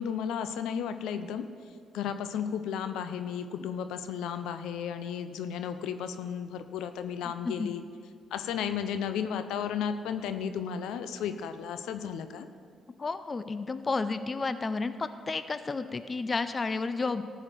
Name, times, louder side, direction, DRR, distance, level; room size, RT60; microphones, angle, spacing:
voice 1, 0.0-1.5 1.9-7.8 8.3-12.5, left 8 dB, 90° left, 10 dB, 0.6 m, -34 dB
voice 2, 13.0-17.2, left 4 dB, 30° left, 12 dB, 0.5 m, -31 dB
14.0 x 5.0 x 7.5 m, 2.2 s
cardioid pair, 90°, 0 cm